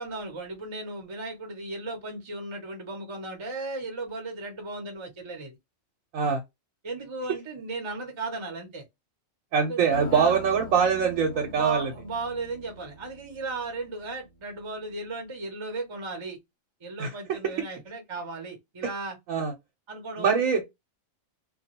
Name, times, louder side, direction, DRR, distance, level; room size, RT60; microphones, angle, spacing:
voice 1, 0.0-5.6 6.2-6.3 6.8-8.8 9.6-9.8 10.1-10.4 11.3-16.4 16.8-19.2 19.9-20.4, right 3 dB, 30° right, 0.7 m, -36 dB
voice 2, 9.5-11.9 17.0-17.1 17.4-17.5 19.3-19.5 20.2-20.8, right 6 dB, 80° right, 1.1 m, -23 dB
sound 1, 9.9-14.2, left 2 dB, 50° left, 0.7 m, -42 dB
2.3 x 2.3 x 2.8 m
omnidirectional pair, 1.4 m